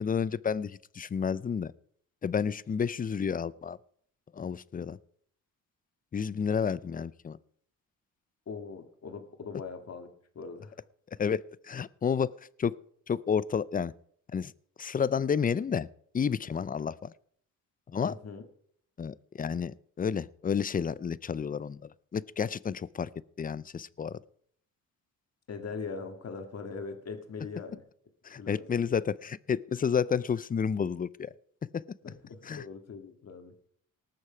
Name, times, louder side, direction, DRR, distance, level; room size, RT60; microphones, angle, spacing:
voice 1, 0.0-1.7 2.2-3.8 4.3-5.0 6.1-7.4 11.2-12.3 12.6-12.7 13.1-13.9 14.3-14.5 14.8-15.9 16.1-17.1 17.9-18.1 19.0-21.8 22.1-23.1 23.4-24.2 28.2-31.3 31.7-31.8 32.4-32.6, left 6 dB, 25° left, 20 dB, 0.5 m, -30 dB
voice 2, 8.5-10.1 10.4-10.8 18.0-18.4 25.5-27.8 28.3-28.7 32.0-33.5, left 4 dB, 50° left, 6 dB, 2.0 m, -41 dB
19.0 x 6.5 x 5.0 m, 0.63 s
cardioid pair, 80°, 33 cm